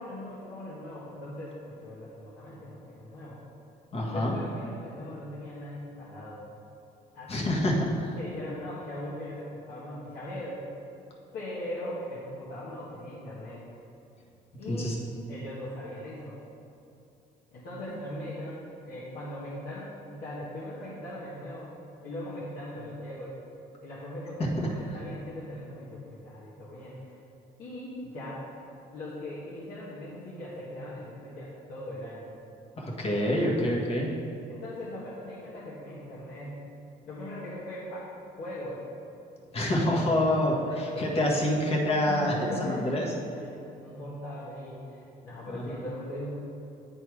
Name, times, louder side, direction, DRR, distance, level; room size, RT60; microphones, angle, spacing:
voice 1, 0.0-3.4 4.1-6.4 7.1-7.6 8.2-10.6 11.3-13.6 14.6-15.0 15.3-16.4 17.5-21.8 22.0-23.3 23.8-27.2 27.6-28.5 28.9-32.3 34.5-36.6 37.1-38.1 38.4-38.8 39.7-40.0 40.5-41.3 42.1-46.3, left 1 dB, 65° left, -9 dB, 1.7 m, -40 dB
voice 2, 3.9-4.3 7.3-8.2 14.7-15.0 32.8-34.1 39.5-42.3 42.6-43.1 45.5-45.6, left 1 dB, 35° left, -2 dB, 1.5 m, -26 dB
9.9 x 4.3 x 4.8 m, 2.9 s
cardioid pair, 110°, 17 cm